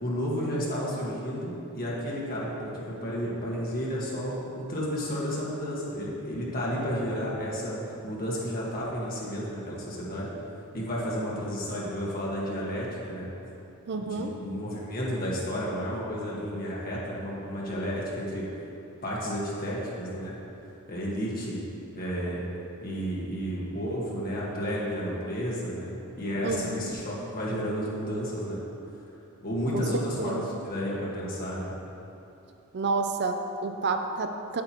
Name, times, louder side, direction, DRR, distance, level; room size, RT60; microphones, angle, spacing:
voice 1, 0.0-10.3 10.7-13.3 14.0-18.4 19.0-20.4 20.9-21.6 21.9-22.4 22.8-28.6 29.4-31.7, equal, 40° left, -6 dB, 1.5 m, -32 dB
voice 2, 13.9-14.3 26.4-27.0 29.7-30.4 32.7-34.6, right 3 dB, 50° right, 6 dB, 0.5 m, -30 dB
8.8 x 8.6 x 3.0 m, 2.8 s
head